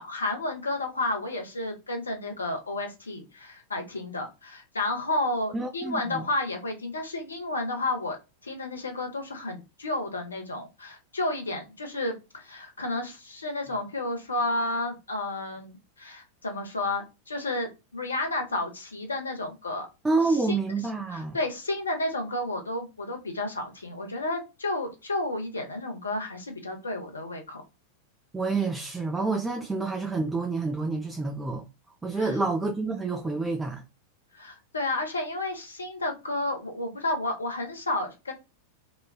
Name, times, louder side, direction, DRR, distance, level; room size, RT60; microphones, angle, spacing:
voice 1, 0.0-8.2 8.4-19.9 20.3-20.6 21.1-27.6 32.2-32.4 34.3-38.3, left 2 dB, 75° left, 0.7 m, -31 dB
voice 2, 5.5-6.3 20.0-21.4 28.3-31.6 32.0-33.8, right 3 dB, 10° right, 0.4 m, -28 dB
3.1 x 2.2 x 2.2 m
figure-of-eight pair, 90°, 0 cm